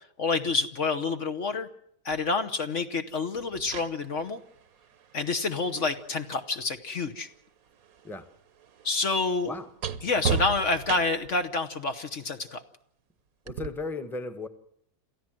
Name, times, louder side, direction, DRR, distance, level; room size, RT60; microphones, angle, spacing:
voice 1, 0.0-1.7 2.0-4.4 5.1-7.3 8.8-9.5 10.0-12.6, left 3 dB, 50° left, 7 dB, 1.4 m, -28 dB
sound 1, 2.1-2.3 3.4-7.4 7.7-11.4 13.5-13.7, right 6 dB, 65° right, 1.5 m, -36 dB
voice 2, 13.4-14.5, left 3 dB, ahead, 9 dB, 1.2 m, -35 dB
28.0 x 14.5 x 7.7 m, 0.72 s
omnidirectional pair, 1.7 m